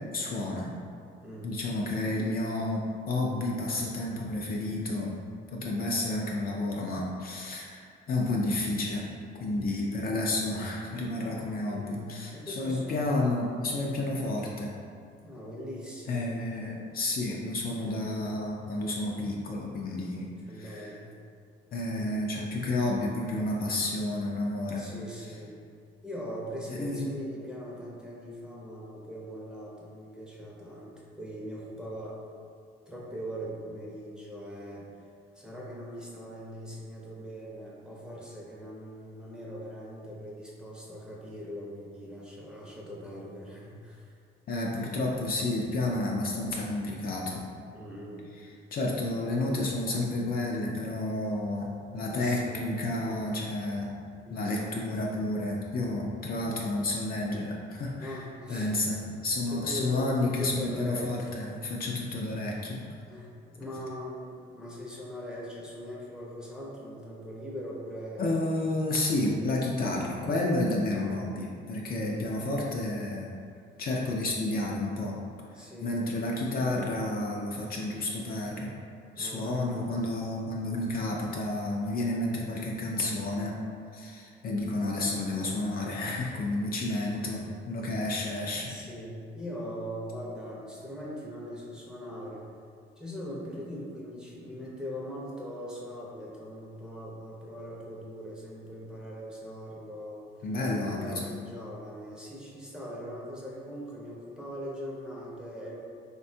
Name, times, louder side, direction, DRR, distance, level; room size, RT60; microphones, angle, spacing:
voice 1, 0.1-0.7 1.4-5.1 5.5-9.0 9.4-14.7 16.1-20.3 20.5-20.9 21.7-24.9 26.7-27.1 44.5-47.4 48.4-54.0 54.3-58.2 58.5-62.8 68.2-73.3 73.8-75.2 75.8-78.7 79.2-83.6 83.9-88.7 100.4-101.3, left 2 dB, 50° left, -2 dB, 0.4 m, -31 dB
voice 2, 1.2-1.6 10.4-10.7 11.7-13.2 13.6-13.9 15.2-16.3 17.8-18.3 20.4-21.2 24.7-25.6 26.0-32.2 32.9-34.9 35.3-44.1 47.7-48.3 52.1-53.4 54.2-54.7 58.0-59.0 59.5-61.5 62.1-62.4 63.1-68.5 70.9-71.3 72.0-72.6 75.5-76.1 79.1-80.1 85.8-86.0 87.0-87.4 88.5-92.5 93.0-100.3 100.8-105.8, equal, 5° right, -5 dB, 0.6 m, -41 dB
3.4 x 2.2 x 2.6 m, 2.3 s
cardioid pair, 90°, 20 cm